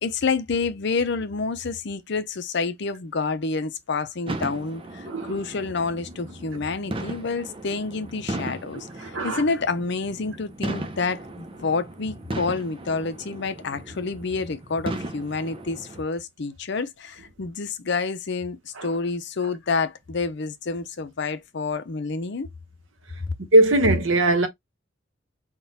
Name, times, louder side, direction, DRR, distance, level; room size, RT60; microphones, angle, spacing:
voice 1, 0.0-22.5, left 4 dB, 60° left, 0.6 m, -28 dB
sound 1, 4.3-16.0, right 1 dB, 30° right, 0.7 m, -36 dB
voice 2, 9.0-9.4 18.7-18.9 23.5-24.5, right 1 dB, 80° right, 1.0 m, -19 dB
3.8 x 2.3 x 4.0 m
head